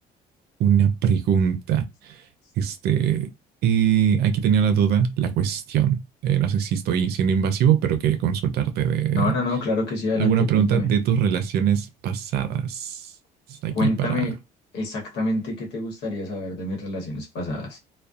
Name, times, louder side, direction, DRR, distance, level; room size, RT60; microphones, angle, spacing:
voice 1, 0.6-2.1 2.6-3.3 3.6-9.3 10.2-13.0 13.6-14.2, right 8 dB, 70° right, 0.5 m, -22 dB
voice 2, 9.1-10.9 13.7-14.3 14.7-17.8, left 2 dB, 80° left, 1.1 m, -27 dB
2.5 x 2.2 x 2.3 m
cardioid pair, 110°, 17 cm